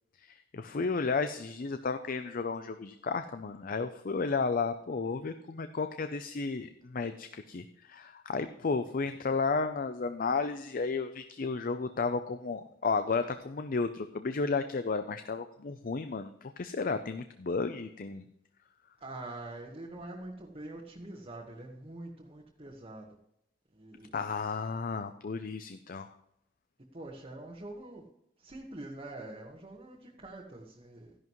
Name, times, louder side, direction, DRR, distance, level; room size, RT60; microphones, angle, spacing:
voice 1, 0.2-18.2 24.1-26.1, left 4 dB, 50° left, 9 dB, 0.5 m, -33 dB
voice 2, 19.0-23.1 23.7-24.2 26.9-28.0 28.4-31.1, right 2 dB, 30° right, -1 dB, 1.3 m, -45 dB
13.0 x 11.0 x 3.1 m, 0.79 s
head